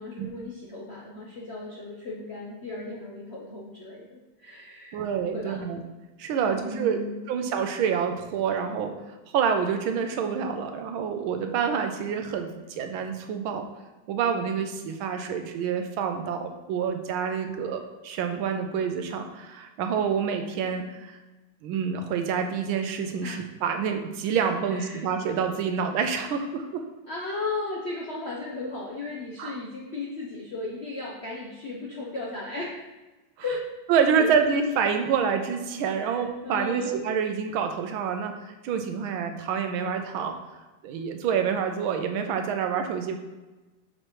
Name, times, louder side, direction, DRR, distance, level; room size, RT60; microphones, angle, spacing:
voice 1, 0.0-5.0 5.3-5.6 6.4-7.3 23.2-23.4 24.7-25.1 27.1-32.8 33.4-33.6 34.2-34.3 36.0-37.0, left 3 dB, 65° left, -4 dB, 0.6 m, -36 dB
voice 2, 4.9-5.8 6.2-7.0 7.3-8.9 9.3-13.7 14.1-21.2 21.6-26.8 29.4-29.6 33.9-40.3 40.8-43.2, right 6 dB, 85° right, 5 dB, 1.5 m, -27 dB
6.4 x 5.9 x 3.1 m, 1.1 s
omnidirectional pair, 2.2 m